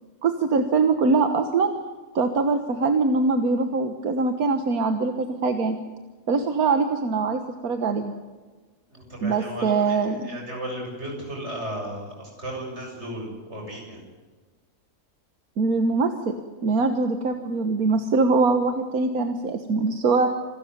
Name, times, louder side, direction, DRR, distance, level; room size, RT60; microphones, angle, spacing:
voice 1, 0.2-1.7 2.2-5.8 6.3-8.1 9.2-10.3 15.6-16.4 16.6-20.3, right 4 dB, 85° right, 7 dB, 1.8 m, -23 dB
voice 2, 8.9-14.0, right 1 dB, 50° right, 0 dB, 7.5 m, -35 dB
27.0 x 13.0 x 9.5 m, 1.3 s
omnidirectional pair, 1.5 m